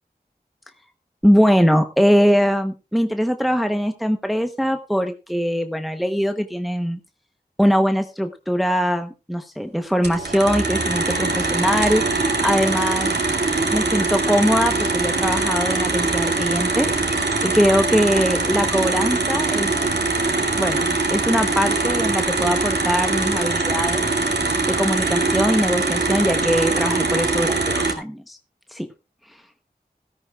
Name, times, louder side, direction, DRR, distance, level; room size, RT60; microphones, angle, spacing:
voice 1, 1.2-7.0 7.6-13.1 13.7-16.9 17.4-19.7 20.6-24.1 24.7-28.4 28.7-28.9, equal, ahead, 7 dB, 0.9 m, -21 dB
sound 1, 10.0-27.9, right 3 dB, 80° right, 2.1 m, -22 dB
17.0 x 13.5 x 2.3 m, 0.29 s
wide cardioid pair, 40°, 17 cm